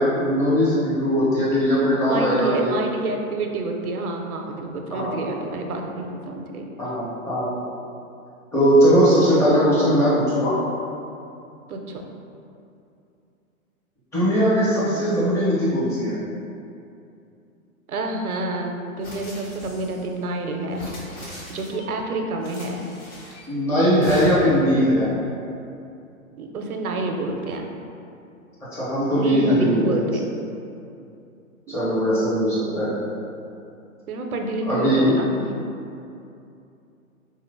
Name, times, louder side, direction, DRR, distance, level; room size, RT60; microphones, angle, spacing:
voice 1, 0.0-2.7 4.9-5.2 6.8-7.5 8.5-10.6 14.1-16.2 23.5-25.1 28.7-30.1 31.7-33.0 34.7-35.1, equal, 5° left, -10 dB, 0.6 m, -20 dB
voice 2, 2.1-6.7 9.3-9.4 11.7-12.0 17.9-20.9 21.2-22.8 26.4-27.7 29.1-30.3 31.7-31.9 34.1-35.5, right 2 dB, 85° right, 2 dB, 0.6 m, -28 dB
sound 1, 19.0-20.1 20.7-21.9 22.4-23.5 24.0-24.7, equal, 30° left, 1.1 m, -37 dB
4.3 x 3.0 x 2.5 m, 2.6 s
figure-of-eight pair, 120°, 43 cm